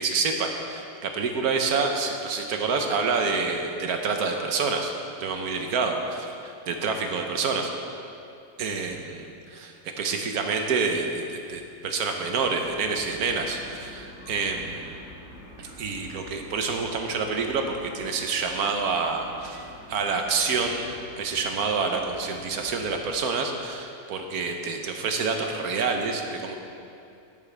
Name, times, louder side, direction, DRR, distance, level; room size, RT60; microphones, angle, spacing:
voice 1, 0.0-4.9 5.2-7.7 8.6-14.9 15.6-20.9 21.2-26.6, right 4 dB, 65° right, 4 dB, 1.4 m, -28 dB
sound 1, 12.4-23.1, left 1 dB, 45° left, 2.2 m, -47 dB
12.5 x 10.5 x 3.4 m, 2.6 s
omnidirectional pair, 1.8 m